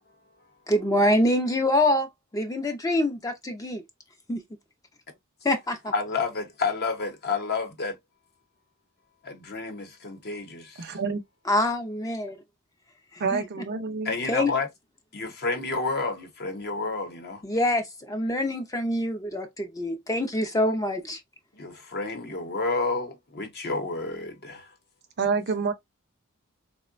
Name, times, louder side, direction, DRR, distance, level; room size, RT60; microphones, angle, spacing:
voice 1, 0.7-2.1 2.3-3.8 4.3-4.4 5.4-5.9 11.5-12.4 13.1-13.4 14.3-14.5 17.4-21.2, left 1 dB, 15° left, 0.5 m, -25 dB
voice 2, 5.9-8.0 9.2-11.0 14.0-14.7 15.1-17.4 21.5-24.7, left 3 dB, 50° left, 0.8 m, -30 dB
voice 3, 10.8-11.2 13.2-14.2 25.2-25.7, right 5 dB, 50° right, 0.6 m, -27 dB
3.7 x 2.1 x 2.4 m
head